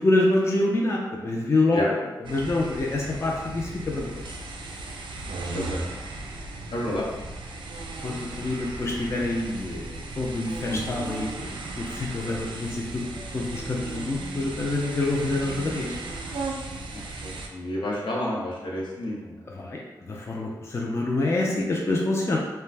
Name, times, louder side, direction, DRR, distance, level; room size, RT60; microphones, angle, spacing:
voice 1, 0.0-4.2 8.0-11.5 11.8-13.0 13.3-16.0 19.5-22.4, left 2 dB, 35° left, -2 dB, 0.4 m, -26 dB
sound 1, 2.2-17.5, right 2 dB, 85° right, 0.3 m, -36 dB
voice 2, 6.7-7.0 17.2-19.3, left 1 dB, 85° left, -4 dB, 0.7 m, -30 dB
2.4 x 2.2 x 3.2 m, 1.1 s
wide cardioid pair, 105°, 8 cm